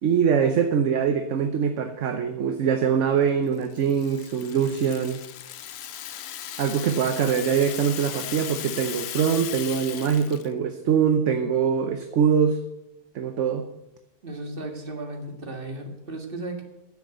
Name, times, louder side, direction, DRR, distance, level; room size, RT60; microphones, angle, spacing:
voice 1, 0.0-5.2 6.6-12.6 13.1-13.6, right 7 dB, 60° right, 7 dB, 1.0 m, -23 dB
Rattle (instrument), 3.5-10.5, left 10 dB, 65° left, 0.6 m, -37 dB
voice 2, 14.2-16.6, right 2 dB, 35° right, 3 dB, 2.0 m, -35 dB
10.5 x 7.7 x 7.9 m, 0.94 s
omnidirectional pair, 1.6 m